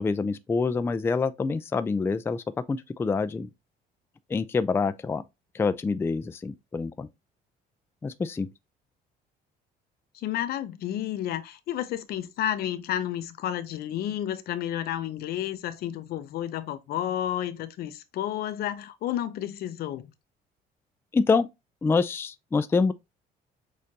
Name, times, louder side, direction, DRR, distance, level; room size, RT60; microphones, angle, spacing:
voice 1, 0.0-3.5 4.3-5.2 5.5-7.1 8.0-8.5 21.1-21.5 21.8-22.9, left 4 dB, 15° left, 0.3 m, -26 dB
voice 2, 10.1-20.1, left 11 dB, 65° left, 0.6 m, -31 dB
6.4 x 2.5 x 2.8 m
cardioid pair, 110°, 17 cm